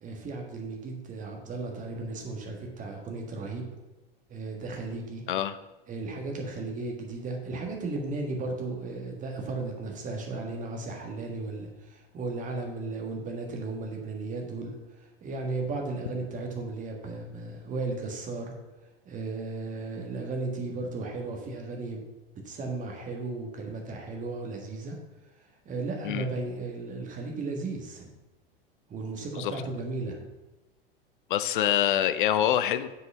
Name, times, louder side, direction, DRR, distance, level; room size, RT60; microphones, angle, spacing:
voice 1, 0.0-3.6 4.3-5.2 5.9-18.5 19.0-22.1 22.4-25.0 25.6-28.1 28.9-30.3, right 3 dB, 25° right, 2 dB, 1.6 m, -35 dB
voice 2, 31.3-32.9, left 11 dB, 55° left, 12 dB, 0.6 m, -25 dB
6.6 x 5.0 x 5.5 m, 1.1 s
figure-of-eight pair, 85°, 30 cm